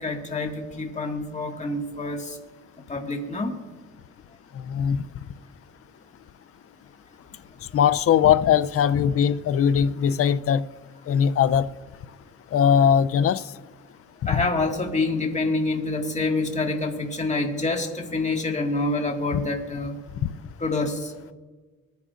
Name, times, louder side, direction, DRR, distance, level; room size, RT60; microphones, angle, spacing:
voice 1, 0.0-2.4 2.9-3.5 14.3-20.0 20.6-21.1, left 2 dB, 25° left, 1.9 m, -27 dB
voice 2, 4.6-5.0 7.7-10.6 11.1-11.7 12.5-13.4 14.3-14.4 19.3-19.4 20.2-20.3, left 8 dB, 50° left, 0.5 m, -20 dB
22.0 x 9.5 x 2.5 m
cardioid pair, 90°, 30 cm